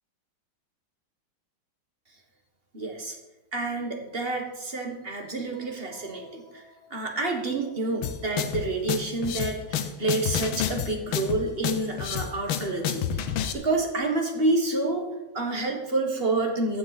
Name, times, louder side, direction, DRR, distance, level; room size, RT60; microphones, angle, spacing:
voice 1, 2.7-3.2 3.5-13.3 13.5-15.1 15.3-16.8, right 2 dB, 35° right, 2 dB, 1.4 m, -28 dB
sound 1, 8.0-13.5, left 9 dB, 85° left, 1.6 m, -29 dB
14.5 x 7.0 x 4.1 m, 1.0 s
omnidirectional pair, 2.2 m